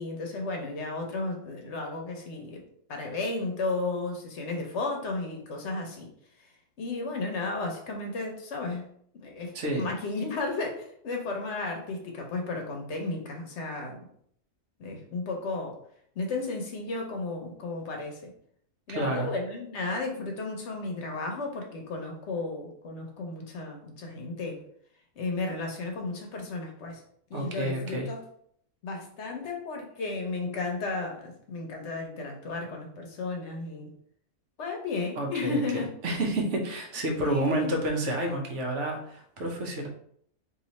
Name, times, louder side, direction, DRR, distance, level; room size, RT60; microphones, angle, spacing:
voice 1, 0.0-2.6 2.9-6.1 6.8-8.8 9.2-14.0 14.8-15.8 16.2-18.3 18.9-24.6 25.2-27.0 27.3-28.2 28.8-33.9 34.6-35.9 37.2-37.8, left 3 dB, 65° left, 2 dB, 1.0 m, -33 dB
voice 2, 9.5-9.9 18.9-19.3 27.3-28.1 35.2-39.9, right 1 dB, 65° right, 1 dB, 1.0 m, -30 dB
3.0 x 2.7 x 4.0 m, 0.66 s
omnidirectional pair, 1.4 m